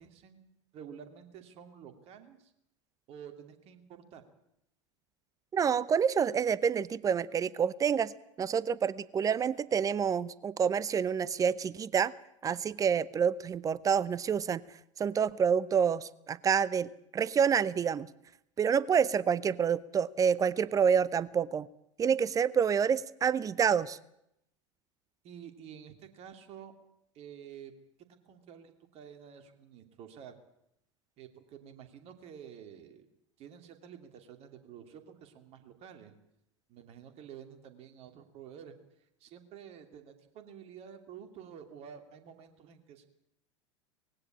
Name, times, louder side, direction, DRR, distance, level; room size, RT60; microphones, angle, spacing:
voice 1, 0.0-2.5 3.1-4.2 25.2-26.7 27.1-27.7 28.1-30.3 31.2-33.1 33.4-36.1 36.7-38.7 39.2-43.1, right 8 dB, 40° right, 7 dB, 2.7 m, -50 dB
voice 2, 5.5-8.1 8.4-12.1 12.4-14.6 15.0-18.1 18.6-21.7 22.0-24.0, right 7 dB, 20° right, 20 dB, 0.7 m, -28 dB
19.5 x 16.5 x 8.6 m, 0.79 s
figure-of-eight pair, 80°, 16 cm